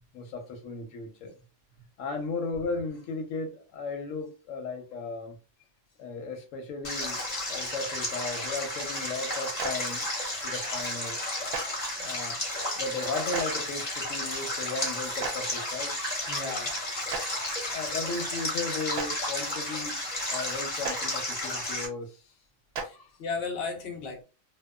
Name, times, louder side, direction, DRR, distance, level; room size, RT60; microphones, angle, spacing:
voice 1, 0.1-1.4 2.0-5.4 6.0-7.2 7.5-10.0 10.4-11.2 12.0-12.4 12.8-15.9 17.7-20.0 20.3-22.3 22.9-23.1, left 3 dB, 90° left, 1.0 m, -35 dB
Stream, 6.8-21.9, left 1 dB, 35° left, 1.0 m, -32 dB
Clapping, 9.6-9.7 11.5-11.6 13.3-13.4 15.2-15.3 17.1-17.2 18.9-19.1 20.8-20.9 22.7-22.8, right 5 dB, 60° right, 0.8 m, -32 dB
voice 2, 16.3-16.7 22.8-24.2, left 4 dB, 60° left, 0.9 m, -35 dB
2.8 x 2.1 x 2.2 m
omnidirectional pair, 1.3 m